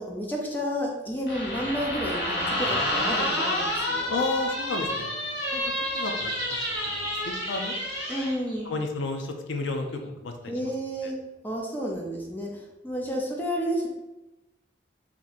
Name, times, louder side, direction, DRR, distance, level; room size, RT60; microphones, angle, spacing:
voice 1, 0.0-4.2 8.1-8.7 10.5-11.1 11.4-13.9, equal, 10° left, -2 dB, 0.4 m, -31 dB
sound 1, 1.2-2.0 2.3-2.8 3.6-3.7 4.1-8.0 8.3-8.7 9.8-10.0, right 2 dB, 25° right, 0.7 m, -39 dB
sound 2, 1.3-8.3, left 1 dB, 60° left, 0.8 m, -29 dB
voice 2, 4.1-5.1 5.5-5.6 5.9-7.7 8.7-10.7 11.0-11.1, left 2 dB, 85° left, 5 dB, 0.5 m, -32 dB
2.9 x 2.6 x 4.0 m, 1.0 s
head